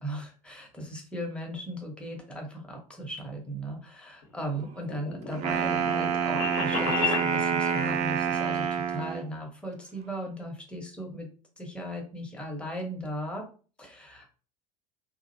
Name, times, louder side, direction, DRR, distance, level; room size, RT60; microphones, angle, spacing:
voice 1, 0.0-11.3 11.6-13.5 13.8-14.3, right 1 dB, 5° left, 0 dB, 0.8 m, -37 dB
sound 1, 4.2-7.3, left 5 dB, 60° left, 0.9 m, -33 dB
Wind instrument woodwind instrument, 5.3-9.3, right 7 dB, 35° right, 0.4 m, -27 dB
2.5 x 2.0 x 2.6 m, 0.38 s
figure-of-eight pair, 75°, 21 cm